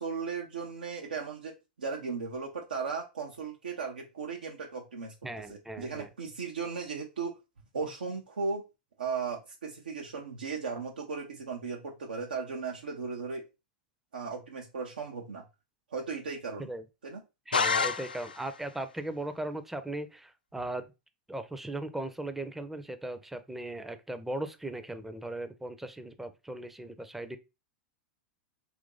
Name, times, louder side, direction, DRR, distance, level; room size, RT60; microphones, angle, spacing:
voice 1, 0.0-5.1 5.5-7.4 7.7-8.6 9.0-13.5 14.1-15.5 15.9-16.7 17.0-17.2, right 5 dB, 80° right, 0.6 m, -36 dB
voice 2, 5.2-6.1 16.6-16.8 17.5-20.9 21.3-27.4, right 1 dB, 5° right, 0.5 m, -38 dB
sound 1, 17.5-18.6, left 5 dB, 90° left, 0.3 m, -28 dB
2.9 x 2.5 x 3.7 m
hypercardioid pair, 95°, 5 cm